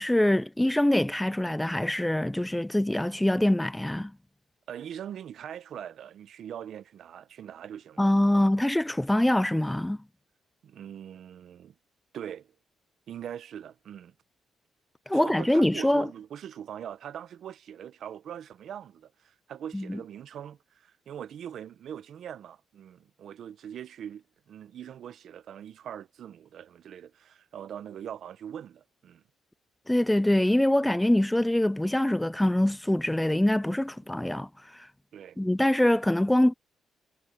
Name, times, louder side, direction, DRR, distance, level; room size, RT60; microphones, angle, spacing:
voice 1, 0.0-4.1 8.0-10.0 15.1-16.1 19.7-20.0 29.9-34.5 35.4-36.5, left 1 dB, 5° left, 0.5 m, -24 dB
voice 2, 4.7-8.4 10.6-11.7 12.1-12.5 13.1-14.1 15.1-29.2 35.1-35.4, right 9 dB, 65° right, 0.9 m, -42 dB
cardioid pair, 90°, 0 cm